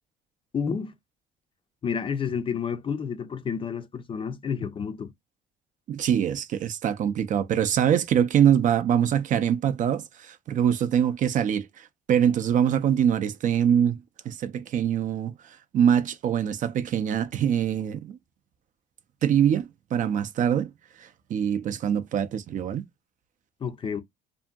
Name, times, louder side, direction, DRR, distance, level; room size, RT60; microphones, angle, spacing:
voice 1, 0.5-0.9 1.8-5.1 23.6-24.0, left 6 dB, 30° left, 0.4 m, -30 dB
voice 2, 5.9-14.0 14.3-18.2 19.2-20.7 21.0-22.8, right 9 dB, 50° right, 0.4 m, -24 dB
2.6 x 2.5 x 2.2 m
cardioid pair, 110°, 17 cm